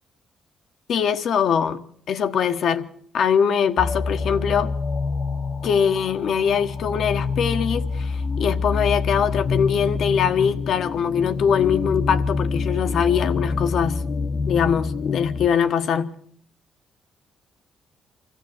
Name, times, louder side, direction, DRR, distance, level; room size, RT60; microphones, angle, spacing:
voice 1, 0.9-4.7 5.6-14.0 14.5-16.1, left 7 dB, 65° left, 1.4 m, -22 dB
sound 1, 3.8-15.5, left 4 dB, 50° left, 1.1 m, -26 dB
24.5 x 14.5 x 8.2 m
cardioid pair, 90°, 0 cm